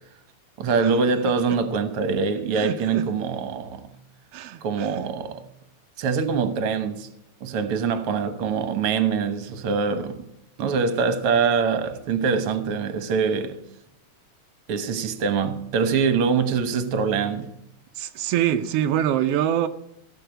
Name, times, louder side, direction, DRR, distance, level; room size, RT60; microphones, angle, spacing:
voice 1, 0.6-3.8 4.6-5.4 6.0-7.1 7.4-10.3 10.6-13.6 14.7-17.5, right 5 dB, 60° right, 1.8 m, -24 dB
voice 2, 2.5-3.0 4.3-5.1 17.9-19.7, right 11 dB, 80° right, 1.3 m, -25 dB
16.0 x 7.0 x 8.0 m
omnidirectional pair, 3.5 m